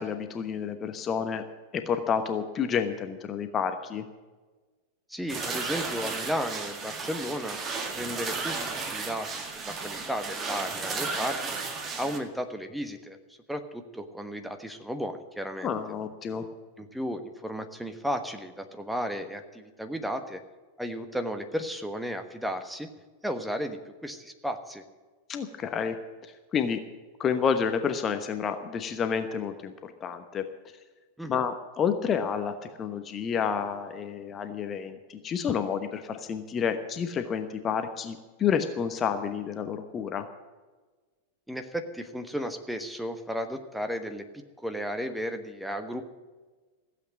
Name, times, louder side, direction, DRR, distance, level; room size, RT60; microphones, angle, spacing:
voice 1, 0.0-1.4 1.7-4.0 15.6-16.5 25.3-26.0 26.2-26.8 27.2-30.5 31.3-40.3, left 7 dB, 25° left, 8 dB, 1.0 m, -29 dB
voice 2, 5.1-7.6 7.9-11.6 12.0-13.2 13.5-15.7 16.8-20.4 20.8-22.9 23.2-24.8 31.2-31.4 41.5-46.0, equal, ahead, 7 dB, 1.2 m, -34 dB
sound 1, 5.3-12.2, right 4 dB, 25° right, 2.0 m, -34 dB
15.5 x 8.2 x 8.3 m, 1.3 s
figure-of-eight pair, 90°, 0 cm